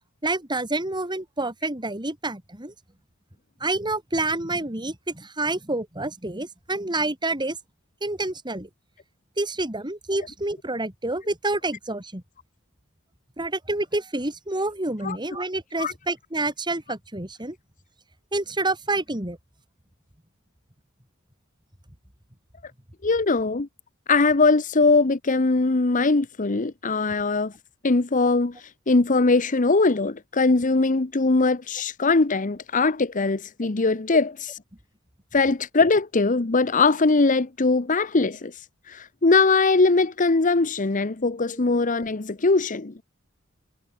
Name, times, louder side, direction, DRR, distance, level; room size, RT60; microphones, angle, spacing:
voice 1, 0.2-2.7 3.6-7.6 8.0-8.7 9.4-12.2 13.4-17.6 18.3-19.4, right 2 dB, 20° right, 4.1 m, -28 dB
voice 2, 23.0-23.7 24.1-27.5 27.8-28.6 28.9-34.5 35.3-38.5 38.9-43.0, left 3 dB, 40° left, 0.9 m, -21 dB
head